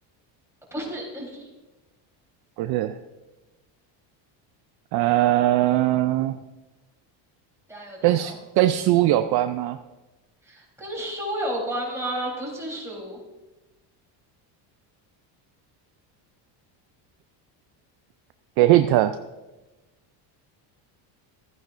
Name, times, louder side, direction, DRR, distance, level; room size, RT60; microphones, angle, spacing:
voice 1, 0.7-1.5 7.7-8.3 10.4-13.2, right 1 dB, 5° right, -3 dB, 3.6 m, -32 dB
voice 2, 2.6-3.0 4.9-6.4 8.0-9.8 18.6-19.2, right 14 dB, 55° right, 10 dB, 0.5 m, -20 dB
14.5 x 8.9 x 2.5 m, 1.1 s
cardioid pair, 110°, 48 cm